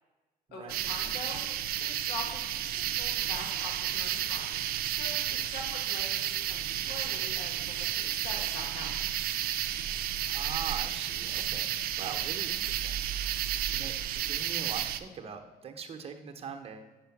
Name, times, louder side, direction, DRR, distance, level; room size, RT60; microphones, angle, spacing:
voice 1, 0.5-1.4 1.8-4.6 4.9-9.0, left 2 dB, 70° left, 1 dB, 1.3 m, -44 dB
sound 1, 0.7-15.0, right 11 dB, 60° right, 0.4 m, -32 dB
voice 2, 10.3-11.7 12.0-16.9, right 6 dB, 35° right, 4 dB, 0.8 m, -42 dB
5.8 x 5.0 x 6.0 m, 1.2 s
cardioid pair, 110°, 17 cm